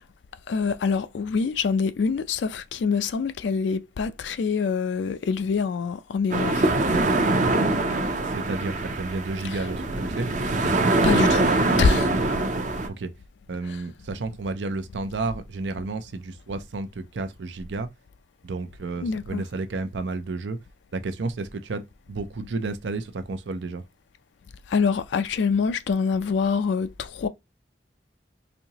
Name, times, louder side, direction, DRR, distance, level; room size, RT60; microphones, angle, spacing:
voice 1, 0.5-6.7 9.4-9.6 11.0-12.1 13.7-13.8 19.0-19.4 24.7-27.3, left 5 dB, 90° left, 0.4 m, -25 dB
sound 1, 6.3-12.9, right 2 dB, 45° right, 0.6 m, -23 dB
voice 2, 8.2-10.3 12.9-13.1 13.5-17.9 18.4-20.6 20.9-23.8, right 3 dB, 90° right, 0.6 m, -31 dB
4.2 x 2.7 x 2.8 m
head